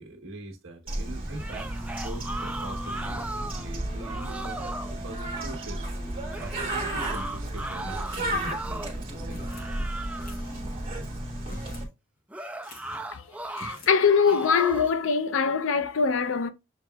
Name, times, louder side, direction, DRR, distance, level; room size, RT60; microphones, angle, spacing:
voice 1, 0.0-1.7 2.0-9.4, right 2 dB, 70° right, 1.2 m, -43 dB
Bird, 0.9-11.8, right 1 dB, 25° right, 1.6 m, -33 dB
sound 1, 1.3-3.7 4.0-4.9 6.3-9.0 9.4-10.4 12.3-13.8 14.2-15.0, right 2 dB, 5° right, 0.3 m, -37 dB
sound 2, 8.1-8.7 9.3-9.7 10.2-10.7 11.4-11.9 12.2-12.3 12.6-13.1 13.5-14.0, left 1 dB, 45° left, 1.2 m, -47 dB
voice 2, 13.5-16.5, left 5 dB, 70° left, 0.5 m, -23 dB
6.7 x 2.9 x 2.3 m
head